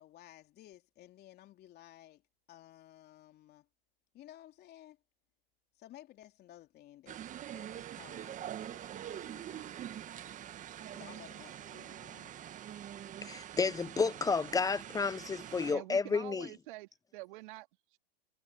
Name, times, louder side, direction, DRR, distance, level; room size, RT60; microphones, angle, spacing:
voice 1, 0.0-2.2 2.5-3.7 4.1-5.0 5.8-7.2 7.5-9.8 10.9-12.3, left 13 dB, 30° left, 3.4 m, -56 dB
sound 1, 7.1-15.7, right 11 dB, 25° right, 1.6 m, -45 dB
voice 2, 13.2-16.5, left 4 dB, 10° left, 0.9 m, -31 dB
voice 3, 15.7-18.0, right 20 dB, 55° right, 2.5 m, -47 dB
hypercardioid pair, 115°, 31 cm